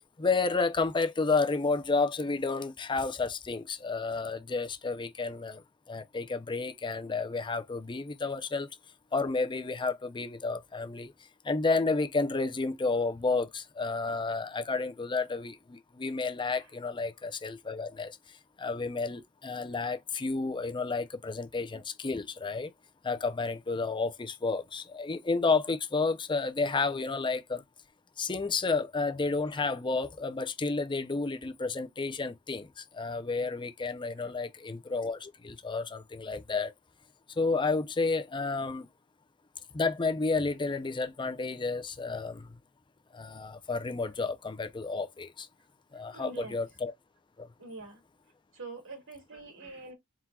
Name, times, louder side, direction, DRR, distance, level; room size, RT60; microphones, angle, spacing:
voice 1, 0.2-8.7 9.1-11.1 11.4-22.7 23.0-27.6 28.2-36.7 37.4-38.9 39.7-42.6 43.1-45.5 45.9-46.9 47.4-47.5, left 4 dB, 20° left, 0.5 m, -31 dB
voice 2, 46.1-46.6 47.6-48.0 48.5-49.9, right 3 dB, 60° right, 2.2 m, -45 dB
4.4 x 3.7 x 2.3 m
head